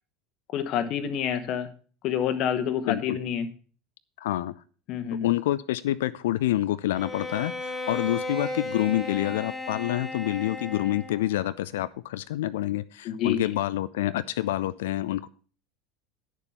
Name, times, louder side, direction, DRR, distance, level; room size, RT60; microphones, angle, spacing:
voice 1, 0.5-1.7 2.0-3.5 4.9-5.3 13.0-13.6, left 9 dB, 45° left, 1.0 m, -28 dB
voice 2, 2.9-3.2 4.2-4.5 5.2-15.3, left 14 dB, 60° left, 0.4 m, -27 dB
Bowed string instrument, 6.9-11.4, left 2 dB, 10° left, 1.9 m, -35 dB
9.6 x 6.8 x 5.8 m
figure-of-eight pair, 75°, 0 cm